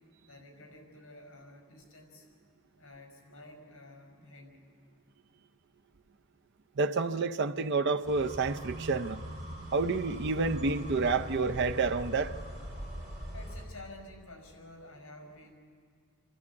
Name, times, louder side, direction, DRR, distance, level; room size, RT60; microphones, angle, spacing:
voice 1, 0.2-2.2 2.8-4.7 13.3-15.5, left 2 dB, 70° left, 5.1 m, -51 dB
voice 2, 6.8-9.2 9.7-12.3, right 4 dB, 55° right, 0.5 m, -29 dB
sound 1, 8.0-13.7, equal, 35° right, 4.2 m, -41 dB
27.5 x 12.0 x 8.4 m
head